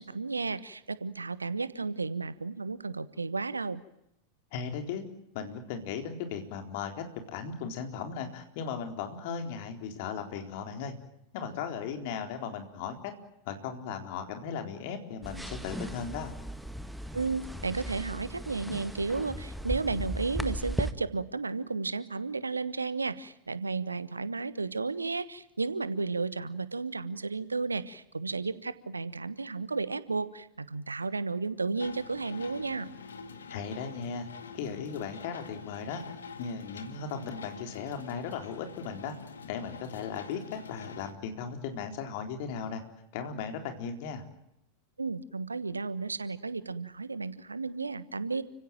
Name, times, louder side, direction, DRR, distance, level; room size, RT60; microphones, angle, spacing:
voice 1, 0.0-3.8 17.1-32.9 45.0-48.4, right 4 dB, 80° right, 16 dB, 1.2 m, -33 dB
voice 2, 4.5-5.1 5.3-10.9 11.3-13.1 13.5-16.3 33.5-34.3 34.5-36.0 36.4-39.2 39.4-42.8 43.1-44.2, left 6 dB, 50° left, 5 dB, 4.0 m, -37 dB
sound 1, 15.2-20.9, right 1 dB, 5° right, 1.6 m, -37 dB
sound 2, 31.8-41.1, left 5 dB, 70° left, 2.0 m, -46 dB
30.0 x 16.5 x 9.1 m, 0.82 s
figure-of-eight pair, 90°, 0 cm